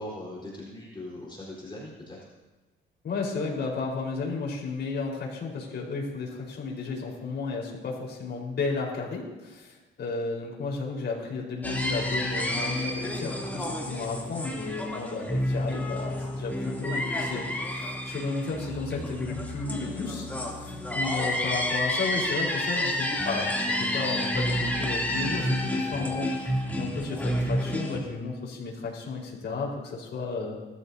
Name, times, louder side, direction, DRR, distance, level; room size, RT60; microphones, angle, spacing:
voice 1, 0.0-2.2, left 1 dB, 25° left, -5 dB, 4.2 m, -40 dB
voice 2, 3.0-20.3 20.6-26.3 26.7-30.6, left 4 dB, 60° left, -2 dB, 4.5 m, -33 dB
sound 1, 11.6-28.0, left 1 dB, 10° left, 3.0 m, -30 dB
21.0 x 13.5 x 2.8 m, 1.2 s
cardioid pair, 90°, 20 cm